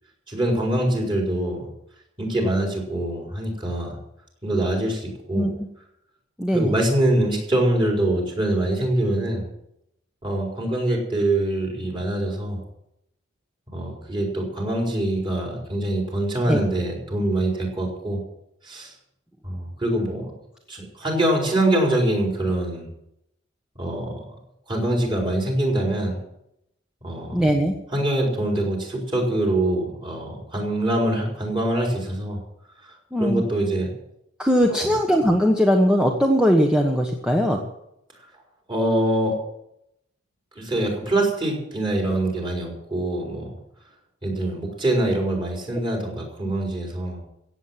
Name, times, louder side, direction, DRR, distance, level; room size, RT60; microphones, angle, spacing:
voice 1, 0.3-1.6 2.2-4.0 4.4-5.5 6.5-9.4 10.2-12.6 13.7-18.2 18.6-18.9 19.4-20.3 20.7-22.9 23.7-24.2 24.7-26.2 27.0-27.4 27.9-32.4 33.2-33.9 34.7-34.9 38.7-39.4 40.6-43.5 44.2-47.2, right 1 dB, 25° right, -1 dB, 4.5 m, -24 dB
voice 2, 6.4-6.7 16.5-16.6 27.3-27.7 33.1-33.4 34.4-37.6, equal, 5° right, 1 dB, 1.2 m, -20 dB
16.0 x 8.4 x 7.5 m, 0.80 s
head